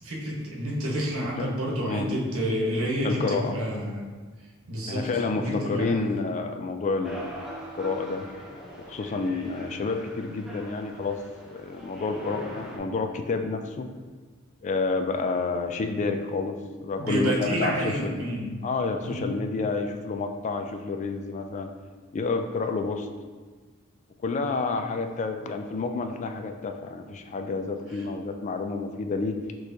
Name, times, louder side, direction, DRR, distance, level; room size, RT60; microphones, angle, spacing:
voice 1, 0.0-4.0 4.7-6.0 17.0-18.6 19.0-19.3, equal, 85° right, -3 dB, 1.0 m, -29 dB
voice 2, 3.0-3.5 4.9-7.4 7.7-8.2 8.9-11.2 11.5-13.9 14.6-16.6 16.8-18.2 18.6-21.7 22.1-23.1 24.2-29.4, left 3 dB, 35° left, 6 dB, 0.3 m, -29 dB
sound 1, 7.0-12.8, equal, ahead, 0.7 m, -42 dB
6.2 x 3.1 x 2.7 m, 1.4 s
head